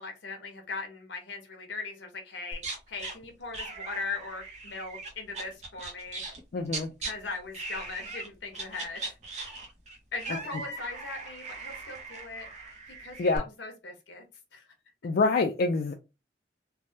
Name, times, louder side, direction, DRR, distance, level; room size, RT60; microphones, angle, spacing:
voice 1, 0.0-2.6 2.9-6.2 7.0-9.1 10.1-12.5 13.0-14.2 14.5-14.7, left 4 dB, 80° left, 0.9 m, -39 dB
sound 1, 2.5-3.1 3.5-7.1 7.5-8.3 8.5-13.4, right 3 dB, 40° right, 0.7 m, -39 dB
voice 2, 6.5-6.9 13.2-13.4 15.0-15.9, left 3 dB, 55° left, 0.3 m, -26 dB
3.3 x 2.1 x 2.7 m
head